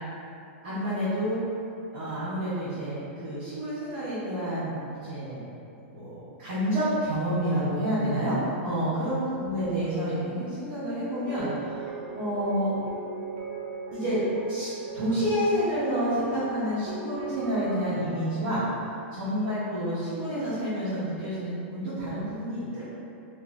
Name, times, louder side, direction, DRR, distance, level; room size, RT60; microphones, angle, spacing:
voice 1, 0.6-1.4 1.9-5.4 5.9-12.7 13.9-14.2 14.5-14.7 14.9-18.6 19.1-22.8, equal, 50° right, -15 dB, 1.1 m, -29 dB
sound 1, 11.2-18.1, right 4 dB, 30° right, 0.4 m, -37 dB
3.2 x 3.0 x 2.4 m, 2.7 s
supercardioid pair, 175°, 7 cm